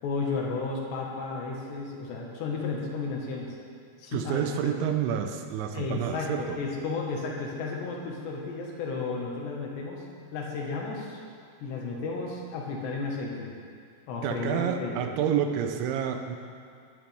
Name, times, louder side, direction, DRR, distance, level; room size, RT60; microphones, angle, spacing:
voice 1, 0.0-3.6 4.0-4.8 5.7-10.0 10.3-11.2 11.6-13.5 14.1-14.9, left 4 dB, 70° left, -2 dB, 3.4 m, -33 dB
voice 2, 4.1-6.6 14.2-16.4, right 8 dB, 85° right, 6 dB, 3.1 m, -29 dB
19.5 x 11.0 x 3.5 m, 2.2 s
omnidirectional pair, 5.4 m